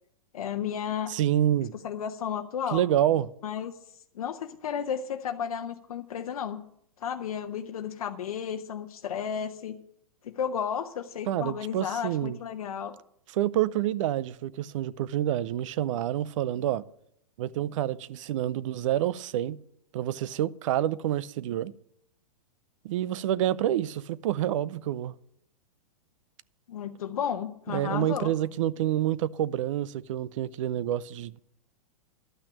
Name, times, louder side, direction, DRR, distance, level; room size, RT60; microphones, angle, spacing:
voice 1, 0.3-1.1 1.8-2.9 3.4-3.7 4.1-6.6 7.0-9.8 10.2-12.9 26.7-28.3, left 8 dB, 80° left, 0.8 m, -33 dB
voice 2, 1.1-1.7 2.7-3.3 11.3-12.4 13.3-16.9 17.4-19.6 19.9-21.7 22.8-25.1 27.7-31.4, right 12 dB, 60° right, 0.6 m, -28 dB
12.5 x 6.0 x 8.7 m
hypercardioid pair, 125°, 18 cm